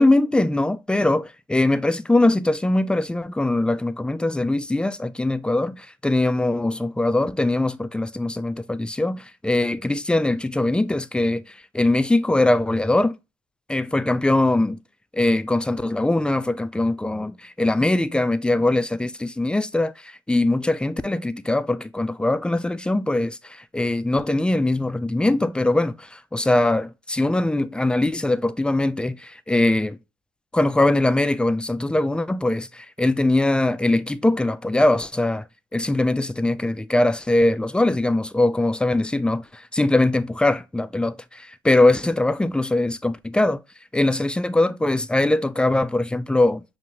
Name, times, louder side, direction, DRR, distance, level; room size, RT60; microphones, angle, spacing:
voice 1, 0.0-13.1 13.7-14.8 15.1-30.0 30.5-35.4 35.7-43.6 43.9-46.6, left 2 dB, 10° left, 0.4 m, -21 dB
5.6 x 2.5 x 3.0 m
hypercardioid pair, 55°, 11 cm